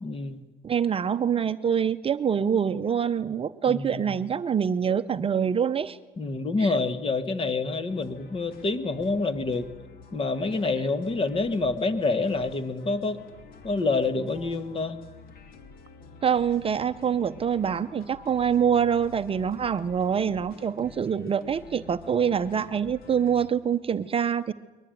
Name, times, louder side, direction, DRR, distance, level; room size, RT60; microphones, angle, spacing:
voice 1, 0.0-0.4 3.7-4.1 6.2-9.7 10.1-13.2 13.6-15.0, left 3 dB, 35° left, 11 dB, 1.7 m, -27 dB
voice 2, 0.6-6.0 6.6-6.8 16.2-24.5, right 7 dB, 35° right, 11 dB, 0.7 m, -25 dB
sound 1, 7.9-23.5, left 5 dB, 60° left, 2.5 m, -49 dB
22.0 x 19.5 x 9.2 m, 1.2 s
cardioid pair, 110°, 17 cm